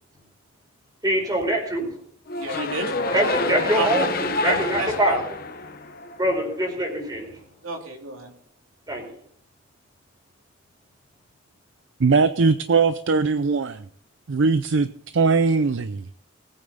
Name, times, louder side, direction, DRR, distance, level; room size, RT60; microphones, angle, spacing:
voice 1, 1.0-1.9 3.1-5.2 6.2-7.4 8.9-9.1, right 1 dB, 20° right, 1 dB, 4.3 m, -24 dB
sound 1, 2.3-6.5, left 3 dB, 50° left, 1.1 m, -28 dB
voice 2, 2.4-2.9 3.4-4.0 4.4-5.2 7.6-8.3, right 2 dB, 85° right, 2 dB, 2.7 m, -31 dB
voice 3, 12.0-13.9 14.3-16.1, right 4 dB, 65° right, 12 dB, 0.5 m, -20 dB
20.0 x 9.0 x 4.0 m, 0.64 s
head